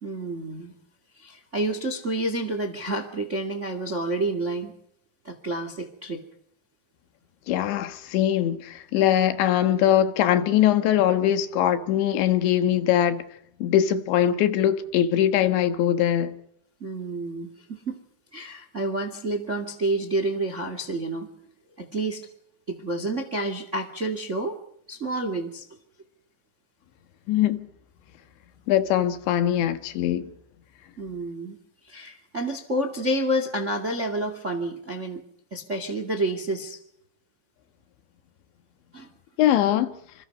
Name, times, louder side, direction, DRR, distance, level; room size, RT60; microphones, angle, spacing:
voice 1, 0.0-0.7 1.1-4.8 5.2-6.2 16.8-18.0 18.3-21.3 21.8-22.3 22.7-24.6 24.9-25.7 31.0-31.6 31.8-35.2 35.5-36.8 38.9-39.1, right 1 dB, 30° right, 1.3 m, -29 dB
voice 2, 7.5-13.2 13.6-16.3 27.3-27.7 28.7-30.3 39.4-40.0, left 11 dB, 85° left, 3.7 m, -22 dB
27.0 x 26.5 x 5.5 m
omnidirectional pair, 5.0 m